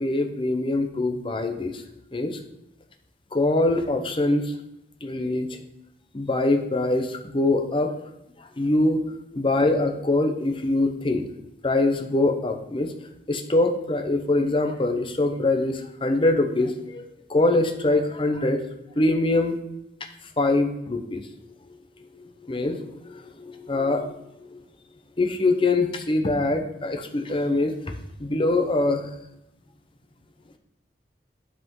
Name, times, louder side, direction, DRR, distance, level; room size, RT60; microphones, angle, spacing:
voice 1, 0.0-1.8 2.1-2.4 3.3-4.5 5.0-5.6 6.1-7.9 8.4-9.0 9.3-11.2 11.6-12.9 13.3-18.6 19.0-19.6 20.4-21.3 22.5-24.1 24.5-24.6 25.2-27.7 28.2-29.0, left 2 dB, 30° left, 5 dB, 0.8 m, -23 dB
11.0 x 5.0 x 3.8 m, 0.85 s
head